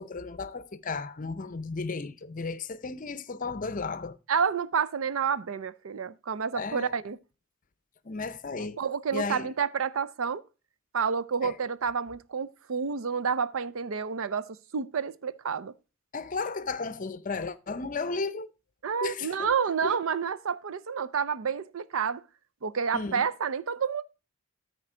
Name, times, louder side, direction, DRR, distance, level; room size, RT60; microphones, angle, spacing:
voice 1, 0.0-4.2 6.5-6.9 8.0-8.8 9.1-9.5 11.4-11.6 16.1-18.5 19.0-19.5 19.8-20.0 22.9-23.3, left 4 dB, 40° left, 0.6 m, -34 dB
voice 2, 4.3-7.2 8.8-10.4 10.9-15.7 18.8-22.2 22.6-24.0, right 6 dB, 70° right, 0.5 m, -29 dB
13.5 x 4.5 x 5.0 m
head